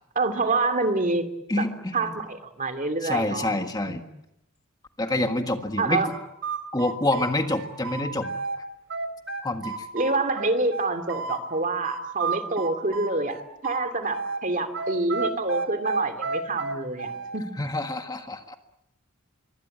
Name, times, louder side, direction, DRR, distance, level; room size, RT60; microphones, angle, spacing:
voice 1, 0.1-1.3 1.6-1.7 1.9-4.0 5.8-6.1 9.9-17.5, right 3 dB, 35° right, 8 dB, 2.6 m, -27 dB
voice 2, 1.5-2.1 3.0-4.0 5.0-6.1 6.7-8.3 9.4-9.9 17.6-18.6, left 2 dB, 20° left, 6 dB, 1.7 m, -27 dB
sound 1, 6.0-8.6 8.9-11.4 11.8-14.4 14.7-17.4, right 4 dB, 60° right, 3.3 m, -31 dB
25.0 x 24.0 x 9.1 m, 0.83 s
head